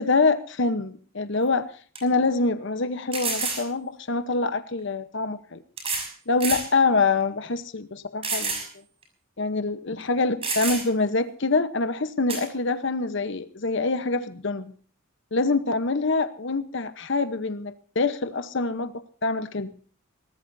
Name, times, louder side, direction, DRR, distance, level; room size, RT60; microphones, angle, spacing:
voice 1, 0.0-1.7 2.0-5.6 6.3-8.6 9.4-14.7 15.3-18.9 19.2-19.7, left 3 dB, 60° left, 12 dB, 1.0 m, -25 dB
sound 1, 1.3-1.4 1.9-2.0 3.1-3.7 4.8-4.9 5.8-6.1 6.4-6.7 7.2-7.3 8.2-8.7 9.0-9.1 10.0-10.1 10.4-11.0 12.3-12.5, right 4 dB, 30° right, 5.8 m, -29 dB
22.5 x 18.5 x 2.7 m, 0.42 s
head